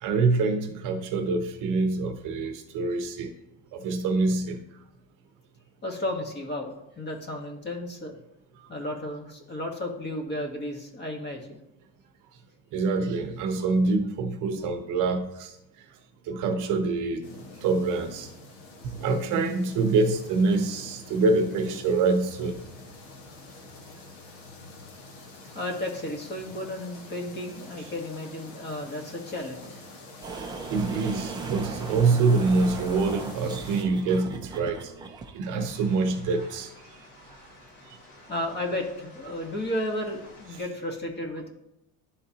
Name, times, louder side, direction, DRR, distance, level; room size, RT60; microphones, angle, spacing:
voice 1, 0.0-3.3 3.7-4.6 8.6-8.7 12.7-15.6 16.3-17.2 17.6-18.3 18.8-22.6 30.4-36.7, right 3 dB, 55° right, 7 dB, 0.8 m, -25 dB
voice 2, 5.8-8.2 8.7-11.6 25.5-29.8 38.3-41.5, left 1 dB, 25° left, 2 dB, 1.2 m, -33 dB
sound 1, 17.2-33.8, left 2 dB, 90° left, 1.5 m, -46 dB
sound 2, 30.2-35.7, right 4 dB, 10° right, 0.4 m, -38 dB
sound 3, 35.6-40.6, left 2 dB, 65° left, 2.6 m, -52 dB
11.0 x 3.8 x 2.8 m, 0.83 s
cardioid pair, 135°, 38 cm